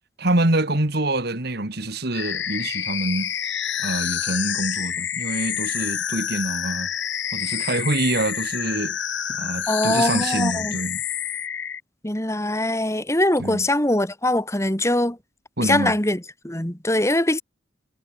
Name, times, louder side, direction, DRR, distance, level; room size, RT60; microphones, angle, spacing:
voice 1, 0.2-3.3 3.8-6.9 7.3-9.0 9.4-11.0 13.4-13.7 15.6-16.0, right 2 dB, 55° right, 2.2 m, -25 dB
sound 1, 2.1-11.8, left 9 dB, 70° left, 5.8 m, -28 dB
voice 2, 9.7-10.8 12.0-15.2 15.6-17.4, left 1 dB, 15° left, 2.4 m, -22 dB
head